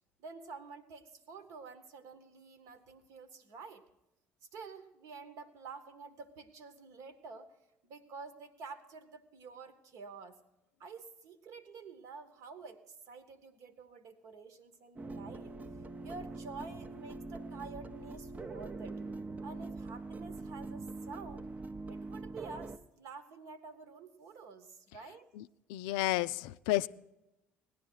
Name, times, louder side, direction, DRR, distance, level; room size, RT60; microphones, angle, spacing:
voice 1, 0.2-3.8 4.5-7.5 7.8-10.4 10.8-15.5 16.0-19.0 19.4-21.5 21.9-25.3, right 4 dB, 55° right, 11 dB, 1.2 m, -49 dB
sound 1, 15.0-22.8, right 3 dB, 25° right, 0.7 m, -43 dB
voice 2, 25.7-26.9, left 16 dB, 65° left, 15 dB, 0.4 m, -31 dB
17.5 x 11.0 x 4.5 m, 0.94 s
figure-of-eight pair, 55°, 7 cm